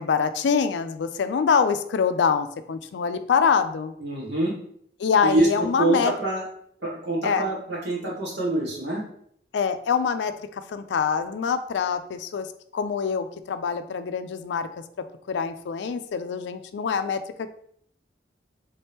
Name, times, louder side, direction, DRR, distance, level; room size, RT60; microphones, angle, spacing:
voice 1, 0.0-3.9 5.0-6.1 7.2-7.5 9.5-12.5 12.7-14.7 15.3-17.5, left 6 dB, 80° left, 10 dB, 0.3 m, -25 dB
voice 2, 4.0-4.5 5.2-5.5 5.8-6.4 6.8-9.0, right 2 dB, 75° right, -4 dB, 1.5 m, -25 dB
3.4 x 2.8 x 3.5 m, 0.65 s
head